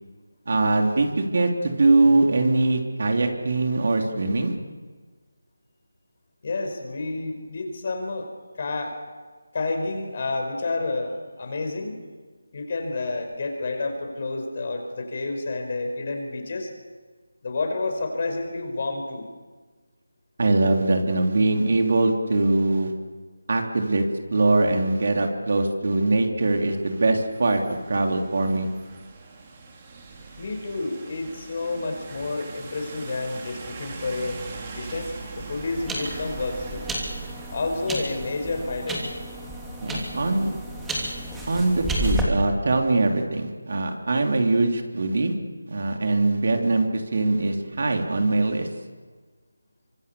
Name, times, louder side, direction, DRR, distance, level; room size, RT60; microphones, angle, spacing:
voice 1, 0.5-4.5 20.4-22.9 23.5-24.0 24.3-28.7 39.8-40.5 41.5-45.3 45.7-48.7, right 2 dB, 50° right, 3 dB, 3.3 m, -22 dB
voice 2, 6.4-8.3 8.6-9.0 9.5-12.0 12.5-16.7 17.4-19.3 30.4-34.4 34.7-36.8 37.5-39.0, left 3 dB, 40° left, 4 dB, 5.4 m, -30 dB
sound 1, 26.6-38.8, right 4 dB, 25° right, 4.0 m, -42 dB
sound 2, 34.8-42.2, right 1 dB, 5° right, 3.0 m, -32 dB
25.5 x 25.5 x 7.0 m, 1.4 s
figure-of-eight pair, 165°, 0 cm